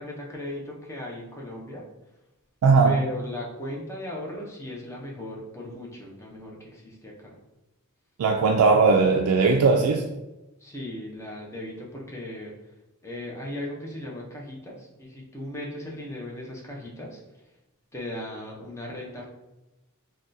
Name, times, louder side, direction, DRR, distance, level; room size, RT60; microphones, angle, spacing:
voice 1, 0.0-1.8 2.8-7.4 10.6-12.5 13.0-17.2 17.9-19.2, left 1 dB, 15° left, -2 dB, 0.6 m, -37 dB
voice 2, 2.6-3.0 8.2-10.0, right 4 dB, 75° right, 3 dB, 0.3 m, -19 dB
3.5 x 2.2 x 2.6 m, 0.97 s
head